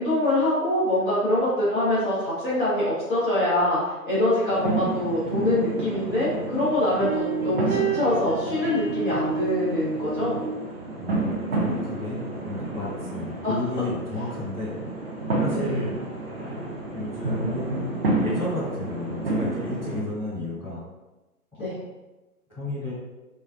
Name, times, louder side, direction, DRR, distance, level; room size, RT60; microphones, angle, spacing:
voice 1, 0.0-10.4 13.4-13.5 15.5-15.7 21.6-21.8, left 1 dB, 35° left, -10 dB, 1.3 m, -24 dB
sound 1, 4.5-20.0, right 2 dB, 40° right, 0.7 m, -30 dB
sound 2, 6.0-6.1 7.0-10.5, right 5 dB, 65° right, 0.9 m, -29 dB
voice 2, 11.0-15.0 15.4-16.0 16.4-20.8 21.5-21.6 22.5-22.9, left 1 dB, 5° left, -17 dB, 1.2 m, -32 dB
4.4 x 2.3 x 2.5 m, 1.1 s
hypercardioid pair, 160°, 47 cm